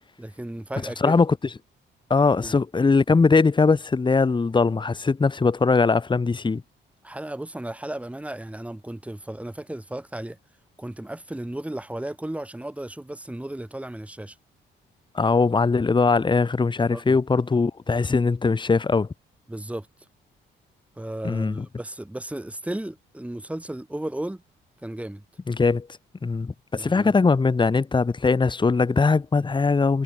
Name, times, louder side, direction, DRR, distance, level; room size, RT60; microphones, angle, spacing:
voice 1, 0.2-1.2 2.4-2.6 7.0-10.4 10.8-14.4 16.9-17.2 19.5-19.9 21.0-24.4 24.8-25.2 26.7-27.1, right 1 dB, 5° right, 2.8 m, -34 dB
voice 2, 1.0-1.4 2.1-6.6 15.1-19.1 21.2-21.7 25.5-25.9 26.2-30.0, left 4 dB, 25° left, 1.3 m, -21 dB
cardioid pair, 90°, 20 cm